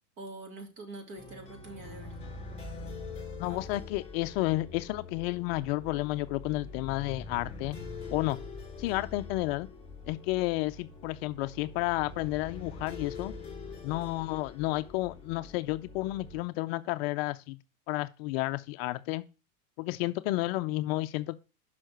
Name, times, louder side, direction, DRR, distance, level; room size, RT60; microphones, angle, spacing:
voice 1, 0.2-2.1 3.5-3.6, right 2 dB, 45° right, 2.7 m, -44 dB
sound 1, 1.2-16.4, left 3 dB, 15° left, 3.9 m, -44 dB
voice 2, 3.4-7.8 8.1-8.4 8.8-9.7 10.1-13.3 13.8-17.6 17.9-19.2 19.8-21.4, left 19 dB, 45° left, 0.5 m, -31 dB
6.3 x 5.7 x 6.3 m
supercardioid pair, 135°, 44 cm